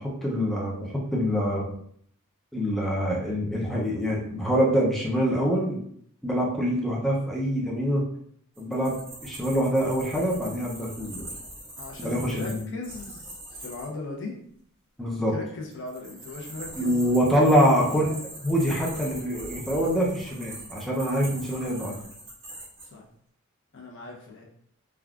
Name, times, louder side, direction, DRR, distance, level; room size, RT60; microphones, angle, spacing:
voice 1, 0.0-1.7 2.5-5.8 6.2-8.1 8.6-11.3 12.0-12.6 15.0-15.3 16.8-18.1 18.4-21.9, equal, ahead, -4 dB, 0.5 m, -25 dB
sound 1, 8.6-13.9 15.7-22.9, right 1 dB, 25° right, 1.3 m, -42 dB
voice 2, 11.8-14.4 15.2-17.0 17.4-18.2 22.8-23.1 23.7-24.4, left 3 dB, 60° left, -1 dB, 0.7 m, -38 dB
3.5 x 2.3 x 2.3 m, 0.65 s
head